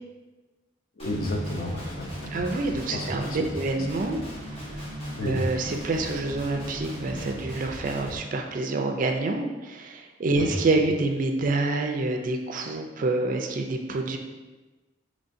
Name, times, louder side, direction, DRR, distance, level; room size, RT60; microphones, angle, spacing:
voice 1, 1.0-2.3 2.9-3.5 5.2-5.4 10.3-10.5, left 1 dB, 50° left, 1 dB, 0.6 m, -32 dB
Guitar, 1.0-8.2, equal, 30° left, 1.0 m, -37 dB
voice 2, 2.3-4.2 4.7-4.8 5.2-14.2, right 2 dB, 45° right, 4 dB, 0.4 m, -27 dB
5.4 x 3.1 x 2.6 m, 1.2 s
head